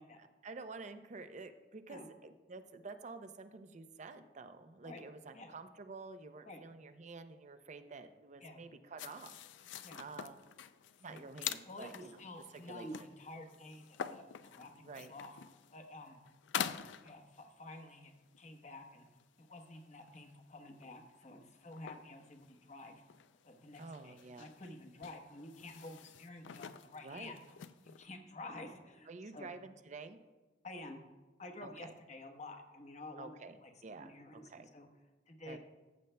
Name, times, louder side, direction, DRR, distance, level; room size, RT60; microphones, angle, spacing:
voice 1, 0.2-10.5 11.0-12.2 12.7-13.1 14.8-15.1 23.8-24.5 27.0-27.4 29.1-30.2 31.6-31.9 33.2-34.7 35.5-35.6, right 3 dB, 40° right, 9 dB, 0.5 m, -50 dB
sound 1, 9.0-17.7 18.3-18.5 19.1-19.7 20.1-20.4 20.8-21.4 21.7-28.0, left 9 dB, 80° left, 0.4 m, -46 dB
voice 2, 11.6-15.3 15.7-16.2 16.6-19.1 19.4-23.0 23.4-27.4 27.8-29.5 30.6-31.0 31.4-33.3 33.6-34.9 35.3-35.6, left 2 dB, 40° left, 4 dB, 1.0 m, -50 dB
14.5 x 7.8 x 2.2 m, 1.3 s
head